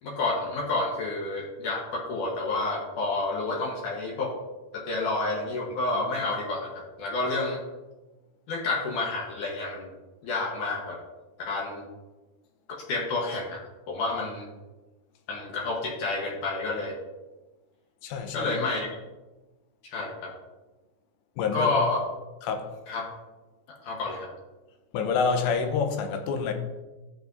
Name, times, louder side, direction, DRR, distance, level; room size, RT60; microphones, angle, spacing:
voice 1, 0.0-4.3 4.7-7.6 8.5-9.9 10.2-11.0 11.5-11.9 12.7-14.5 15.3-17.0 18.3-18.9 19.8-20.3 21.5-22.0 22.9-23.1 23.8-24.3, left 3 dB, 65° left, -2 dB, 2.1 m, -29 dB
voice 2, 18.0-18.5 21.4-21.7 22.4-22.7 24.9-26.5, left 5 dB, 85° left, 6 dB, 3.0 m, -27 dB
13.0 x 7.8 x 2.6 m, 1.1 s
omnidirectional pair, 5.1 m